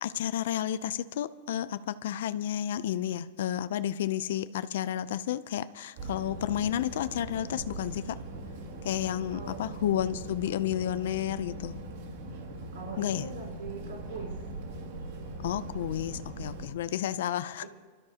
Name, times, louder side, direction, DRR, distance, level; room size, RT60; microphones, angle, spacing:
voice 1, 0.0-8.2 8.8-11.8 13.0-13.3 15.4-17.6, left 11 dB, 70° left, 13 dB, 0.5 m, -31 dB
sound 1, 6.0-16.7, right 2 dB, 55° right, 2.5 m, -41 dB
voice 2, 9.3-9.7 12.7-14.3, right 4 dB, 85° right, 0 dB, 5.7 m, -41 dB
28.5 x 13.0 x 2.9 m, 1.4 s
supercardioid pair, 165°, 0 cm